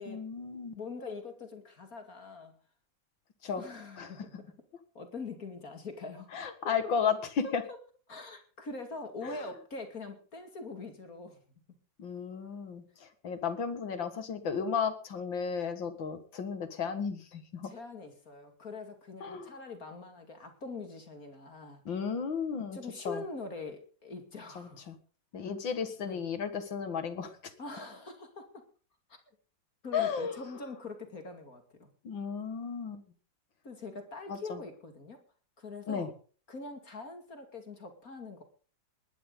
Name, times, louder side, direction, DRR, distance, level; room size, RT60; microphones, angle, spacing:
voice 1, 0.1-0.7 3.4-3.6 4.0-4.1 6.3-7.6 9.2-9.4 12.0-17.7 19.2-19.5 21.9-22.8 23.0-23.2 24.6-25.0 25.3-27.3 29.9-30.4 32.0-33.0 34.3-34.6 35.9-36.1, left 6 dB, 75° left, 9 dB, 2.6 m, -34 dB
voice 2, 0.7-2.5 3.6-4.5 4.9-6.3 7.4-7.5 8.1-11.4 14.5-14.6 17.6-21.8 22.7-24.8 26.0-26.2 27.6-28.5 29.8-31.9 33.6-35.2 35.6-36.1 36.5-38.4, left 3 dB, 45° left, 6 dB, 2.8 m, -43 dB
19.5 x 12.5 x 3.9 m, 0.40 s
omnidirectional pair, 2.1 m